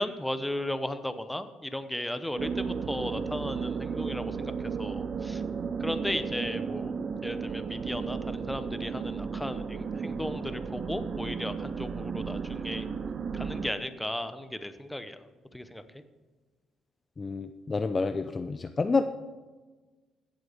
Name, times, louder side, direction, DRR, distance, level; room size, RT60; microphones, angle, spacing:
voice 1, 0.0-4.5 4.8-5.4 5.8-6.9 7.2-12.9 13.3-15.2 15.5-15.8, left 1 dB, 5° left, 10 dB, 0.8 m, -35 dB
sound 1, 2.4-13.7, right 5 dB, 45° right, 0.6 m, -34 dB
voice 2, 17.2-19.0, left 4 dB, 30° left, 9 dB, 0.5 m, -28 dB
16.0 x 7.7 x 3.5 m, 1.3 s
cardioid pair, 95°, 0 cm